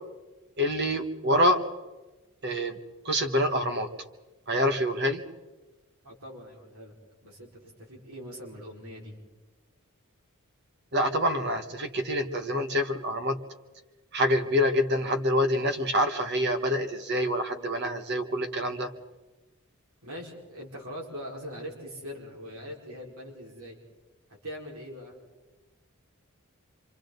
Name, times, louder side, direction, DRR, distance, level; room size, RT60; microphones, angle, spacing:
voice 1, 0.6-1.6 2.4-2.8 3.0-3.9 4.5-5.2 10.9-13.4 14.1-18.9, equal, 50° right, 7 dB, 1.4 m, -26 dB
voice 2, 6.0-6.9 7.2-9.2 20.0-23.8 24.4-25.2, equal, 85° right, -1 dB, 5.1 m, -42 dB
27.0 x 26.5 x 4.0 m, 1.2 s
head